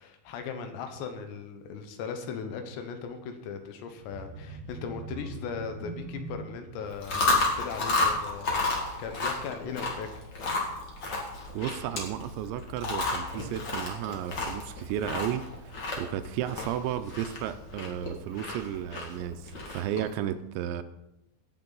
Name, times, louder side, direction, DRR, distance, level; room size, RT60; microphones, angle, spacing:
voice 1, 0.0-10.3, left 6 dB, 75° left, 7 dB, 2.9 m, -38 dB
sound 1, 4.0-9.7 10.1-10.4 10.7-10.8, right 3 dB, 25° left, 2.8 m, -44 dB
Chewing mastication, 6.9-20.1, left 3 dB, 50° left, 1.4 m, -32 dB
voice 2, 11.5-20.8, right 11 dB, 85° right, 10 dB, 2.8 m, -33 dB
18.0 x 7.2 x 3.9 m, 0.91 s
omnidirectional pair, 5.4 m